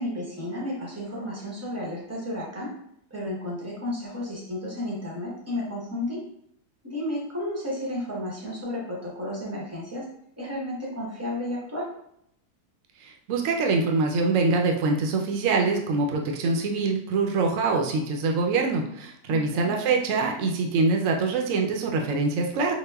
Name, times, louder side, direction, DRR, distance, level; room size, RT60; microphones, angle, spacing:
voice 1, 0.0-2.7 3.1-6.2 6.8-10.1 10.4-11.9 19.3-19.7, left 1 dB, 20° right, -5 dB, 0.4 m, -32 dB
voice 2, 13.0-22.7, right 3 dB, 65° right, 2 dB, 0.8 m, -24 dB
5.1 x 2.1 x 2.2 m, 0.73 s
omnidirectional pair, 1.7 m